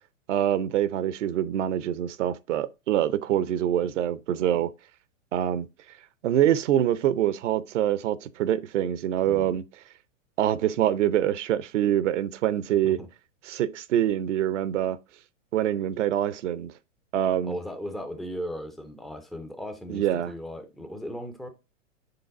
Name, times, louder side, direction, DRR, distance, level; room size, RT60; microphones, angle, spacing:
voice 1, 0.3-4.7 5.3-5.7 6.2-9.6 10.4-13.0 13.4-15.0 15.5-16.7 17.1-17.6 19.9-20.3, right 11 dB, 70° right, 0.7 m, -25 dB
voice 2, 9.2-9.6 12.8-13.1 17.4-21.5, equal, ahead, 0.3 m, -37 dB
6.9 x 3.8 x 3.7 m
hypercardioid pair, 125°, 38 cm